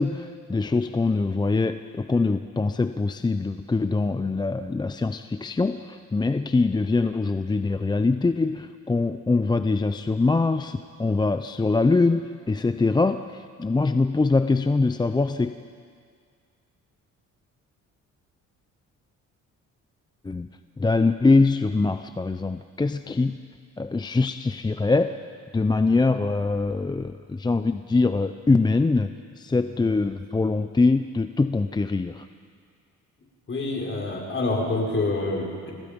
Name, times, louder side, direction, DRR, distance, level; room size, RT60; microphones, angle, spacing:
voice 1, 0.0-15.6 20.2-20.5 20.8-23.4 23.8-25.1 25.5-29.1 29.4-32.3, left 3 dB, 15° left, 9 dB, 0.6 m, -23 dB
voice 2, 33.5-35.7, left 2 dB, 40° left, -1 dB, 5.1 m, -27 dB
27.0 x 20.0 x 5.3 m, 2.2 s
cardioid pair, 90°, 30 cm